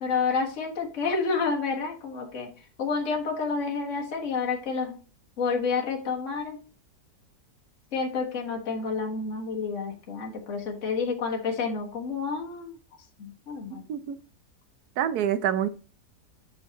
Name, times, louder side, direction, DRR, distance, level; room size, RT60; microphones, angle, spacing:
voice 1, 0.0-2.5 2.8-5.0 5.4-6.6 7.9-12.7 13.2-13.9, left 5 dB, 50° left, 0 dB, 1.8 m, -29 dB
voice 2, 13.7-14.2 15.0-15.7, right 10 dB, 75° right, 13 dB, 1.1 m, -27 dB
6.9 x 6.4 x 2.9 m, 0.37 s
omnidirectional pair, 1.8 m